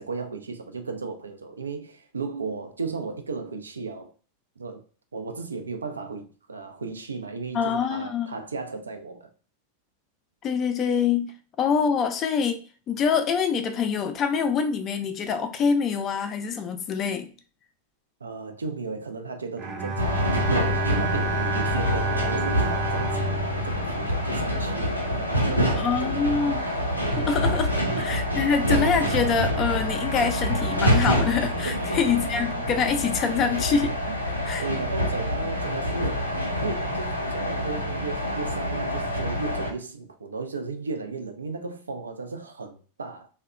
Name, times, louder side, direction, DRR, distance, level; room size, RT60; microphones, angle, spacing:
voice 1, 0.0-4.1 4.6-4.8 5.1-9.3 18.2-26.5 27.7-28.0 31.6-32.0 34.1-43.3, right 4 dB, 75° right, 0.3 m, -35 dB
voice 2, 7.5-8.3 10.4-17.3 25.8-26.7 27.2-34.0 34.5-34.7, left 6 dB, 30° left, 0.4 m, -25 dB
Bowed string instrument, 19.6-24.9, right 2 dB, 25° right, 0.6 m, -30 dB
sound 1, 20.0-39.7, equal, 90° left, 0.4 m, -26 dB
Singing / Musical instrument, 21.9-33.2, right 3 dB, 60° right, 0.9 m, -44 dB
2.7 x 2.1 x 2.3 m
figure-of-eight pair, 90°, 0 cm